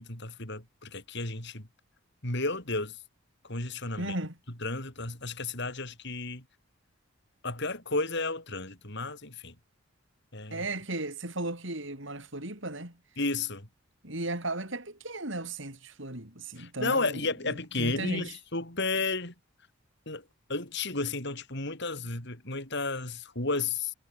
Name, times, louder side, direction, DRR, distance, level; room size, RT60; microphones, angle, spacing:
voice 1, 0.0-1.7 2.2-3.0 3.5-4.1 4.6-6.4 7.4-9.5 10.3-10.6 13.2-13.7 16.6-19.3 20.1-20.2 20.5-23.9, left 3 dB, 55° left, 6.2 m, -32 dB
voice 2, 4.0-4.4 10.5-13.0 14.0-18.4, right 2 dB, 60° right, 6.2 m, -36 dB
head